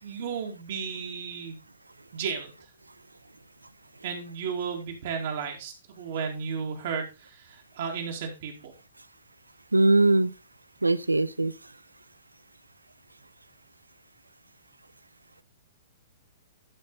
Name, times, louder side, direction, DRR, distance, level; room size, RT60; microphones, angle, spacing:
voice 1, 0.0-1.6 2.1-2.5 4.0-8.7, right 6 dB, 50° right, 2.3 m, -34 dB
voice 2, 9.7-10.3 10.8-11.5, right 2 dB, 80° right, 0.5 m, -21 dB
11.0 x 5.3 x 4.0 m
figure-of-eight pair, 110°, 0 cm